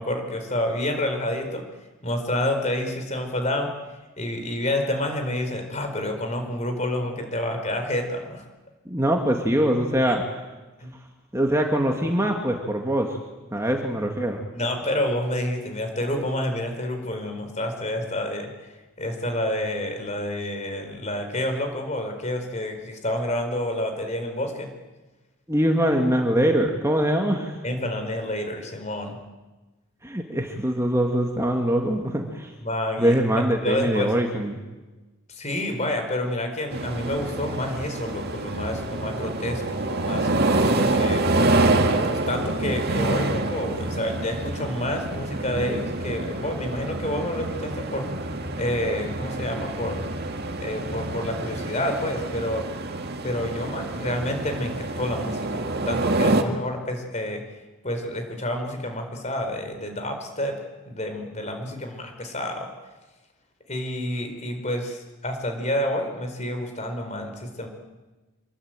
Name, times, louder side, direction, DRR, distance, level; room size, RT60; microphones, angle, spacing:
voice 1, 0.0-1.6 2.0-3.7 4.2-8.4 10.0-10.1 10.8-10.9 14.5-18.5 19.0-24.7 27.6-29.2 32.6-33.1 33.6-34.1 35.3-40.3 40.9-48.1 48.6-50.1 50.6-52.7 53.2-57.4 57.8-60.6 60.9-62.7 63.7-67.7, left 1 dB, 30° left, 5 dB, 4.4 m, -29 dB
voice 2, 8.9-10.2 11.3-13.2 13.5-14.4 25.5-27.6 30.0-32.5 33.0-34.6, equal, 15° right, 2 dB, 2.0 m, -23 dB
sound 1, 36.7-56.4, right 2 dB, 45° right, 2.1 m, -27 dB
26.5 x 22.5 x 9.0 m, 1.2 s
head